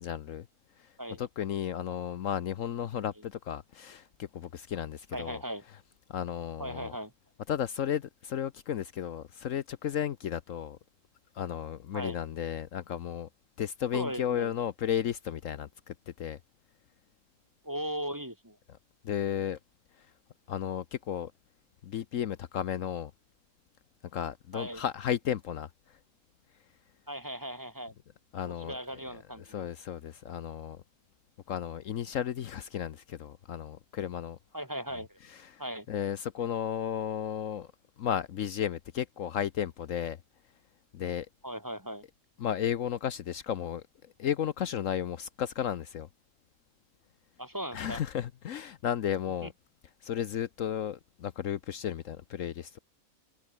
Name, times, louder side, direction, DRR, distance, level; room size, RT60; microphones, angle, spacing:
voice 1, 0.0-0.5 1.2-5.4 6.1-6.9 7.5-10.8 11.3-13.3 13.6-16.4 19.0-19.6 20.5-21.3 21.8-23.1 24.1-25.7 28.3-28.8 29.5-30.8 31.5-34.4 35.3-35.6 35.9-37.7 38.0-40.2 40.9-41.3 42.4-43.8 44.2-46.1 47.7-49.5 50.0-52.8, left 9 dB, 65° left, 1.1 m, -33 dB
voice 2, 5.1-5.6 6.6-7.1 11.9-12.2 13.9-14.5 17.6-18.6 24.5-24.8 27.1-27.9 28.4-29.7 34.5-35.2 35.6-35.9 41.4-42.0 47.4-48.0 49.4-49.5, equal, 15° right, 2.2 m, -38 dB
omnidirectional pair, 1.5 m